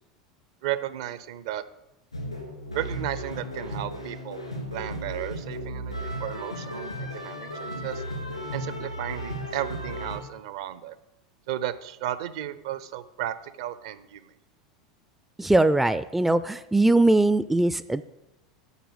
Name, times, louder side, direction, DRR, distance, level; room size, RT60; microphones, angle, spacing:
voice 1, 0.6-1.6 2.7-4.4 4.7-8.0 8.5-10.9 11.5-14.3, right 12 dB, 60° right, 14 dB, 0.7 m, -34 dB
sound 1, 2.1-10.2, equal, 90° left, 2.7 m, -35 dB
voice 2, 15.4-18.0, right 2 dB, 5° right, 14 dB, 0.4 m, -21 dB
8.2 x 6.1 x 8.0 m, 0.91 s
figure-of-eight pair, 80°, 3 cm